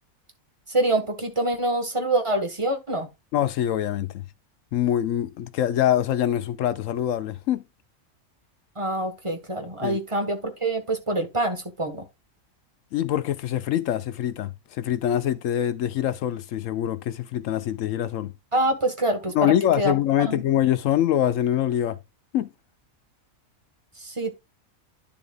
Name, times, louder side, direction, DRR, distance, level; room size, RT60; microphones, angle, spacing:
voice 1, 0.7-3.1 8.8-12.0 18.5-19.9 20.2-20.4 24.0-24.3, right 1 dB, 20° right, 1.4 m, -25 dB
voice 2, 3.3-4.2 4.7-7.6 9.8-10.0 12.9-18.3 19.3-22.0 22.3-22.5, left 11 dB, 70° left, 0.9 m, -24 dB
10.5 x 7.2 x 2.4 m
omnidirectional pair, 1.5 m